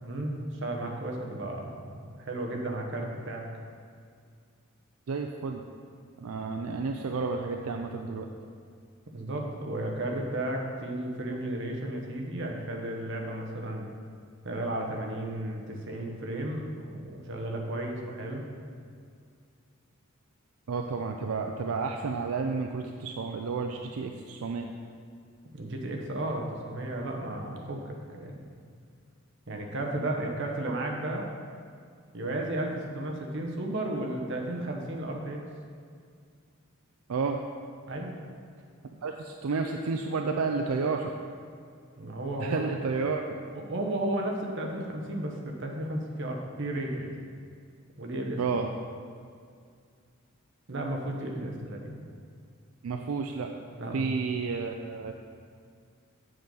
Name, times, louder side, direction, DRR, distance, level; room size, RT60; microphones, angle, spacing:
voice 1, 0.0-3.5 9.1-13.9 14.4-18.5 25.5-28.4 29.5-31.3 32.1-35.4 37.9-38.1 42.0-42.6 42.9-43.0 43.5-47.1 48.0-48.5 50.7-52.0 53.8-54.1, right 1 dB, 55° right, 1 dB, 1.0 m, -34 dB
voice 2, 5.1-5.6 6.2-8.3 20.7-24.7 30.7-30.8 37.1-37.4 39.0-41.1 42.4-43.3 48.4-48.7 52.8-53.5 53.9-55.1, right 4 dB, 85° right, 4 dB, 0.4 m, -31 dB
7.8 x 7.0 x 3.9 m, 2.2 s
head